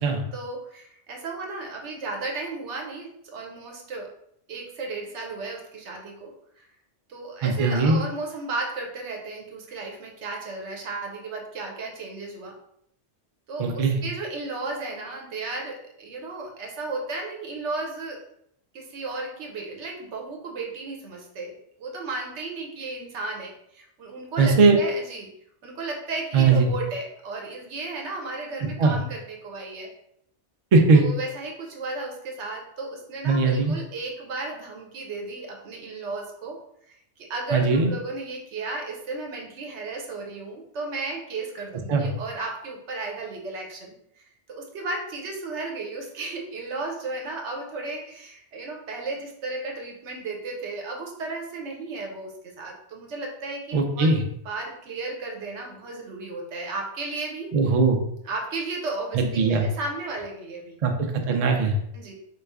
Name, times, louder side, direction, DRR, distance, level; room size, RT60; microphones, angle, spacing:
voice 1, 0.3-4.1 4.5-6.7 7.1-12.5 13.5-18.2 18.7-25.3 25.6-29.9 30.9-36.6 36.9-54.1 54.4-57.5 58.2-60.8 61.9-62.1, right 3 dB, 85° right, 1 dB, 1.0 m, -34 dB
voice 2, 7.4-8.0 13.6-14.0 24.4-24.8 26.3-26.7 28.8-28.9 30.7-31.0 33.2-33.7 37.5-37.9 41.9-42.1 53.7-54.2 57.5-58.0 59.1-59.7 60.8-61.8, right 4 dB, 55° right, 4 dB, 0.4 m, -20 dB
3.1 x 2.4 x 3.4 m, 0.72 s
omnidirectional pair, 1.1 m